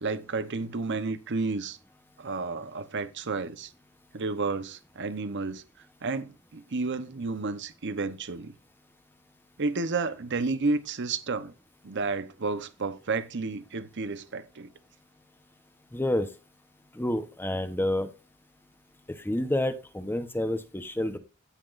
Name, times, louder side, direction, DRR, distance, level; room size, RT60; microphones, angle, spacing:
voice 1, 0.0-1.8 2.2-3.7 4.1-5.6 6.0-8.5 9.6-11.5 11.8-14.7, right 3 dB, 55° right, 0.9 m, -31 dB
voice 2, 15.9-16.3 16.9-18.1 19.1-21.2, left 1 dB, 10° left, 0.9 m, -29 dB
16.5 x 6.0 x 2.5 m
head